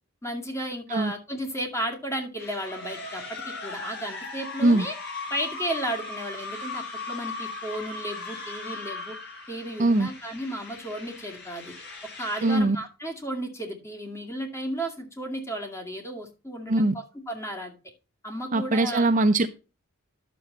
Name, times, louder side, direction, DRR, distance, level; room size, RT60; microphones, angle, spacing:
voice 1, 0.2-5.0 5.3-9.1 9.5-11.7 12.2-17.7 18.2-19.1, right 1 dB, 15° left, 2.3 m, -34 dB
sound 1, 2.4-12.6, left 3 dB, 50° left, 5.0 m, -38 dB
voice 2, 12.4-12.8 16.7-16.9 18.5-19.5, right 2 dB, 35° right, 0.6 m, -21 dB
11.0 x 7.0 x 3.9 m
head